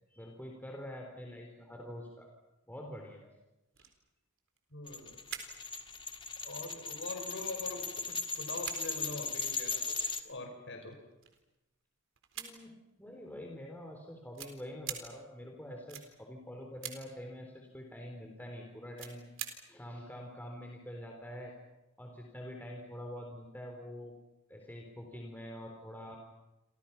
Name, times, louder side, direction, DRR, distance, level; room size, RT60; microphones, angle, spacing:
voice 1, 0.1-2.3 2.7-3.3 3.8-3.9 5.5-5.8 12.4-12.7 13.0-19.2 19.7-21.5 22.0-24.1 24.5-26.2, equal, 10° left, 1 dB, 3.7 m, -46 dB
sound 1, 3.5-3.6 3.7-4.1 4.4-5.5 5.9-6.0 6.6-6.7 7.0-8.1 8.4-9.5 10.3-10.4 10.9-11.6 12.2-12.9 13.8-13.9 14.3-15.0 15.9-16.1 16.8-17.0 18.8-19.5 19.8-19.9, right 10 dB, 65° right, 4.0 m, -44 dB
voice 2, 4.7-5.2 6.4-11.0, left 2 dB, 60° left, 4 dB, 5.7 m, -43 dB
sound 2, 4.9-10.2, left 3 dB, 25° left, 1.8 m, -38 dB
29.0 x 26.5 x 5.8 m, 0.98 s
head